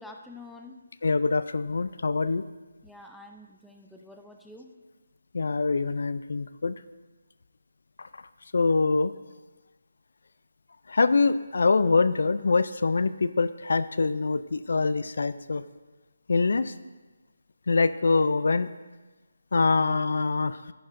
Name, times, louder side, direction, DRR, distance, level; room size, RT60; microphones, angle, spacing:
voice 1, 0.0-0.8 2.8-4.7, left 2 dB, ahead, 2 dB, 0.5 m, -47 dB
voice 2, 1.0-2.4 5.3-6.8 8.0-8.1 8.5-9.1 10.9-15.6 16.3-16.7 17.7-18.7 19.5-20.6, left 4 dB, 65° left, 14 dB, 0.3 m, -24 dB
10.5 x 9.9 x 2.6 m, 1.2 s
figure-of-eight pair, 160°, 0 cm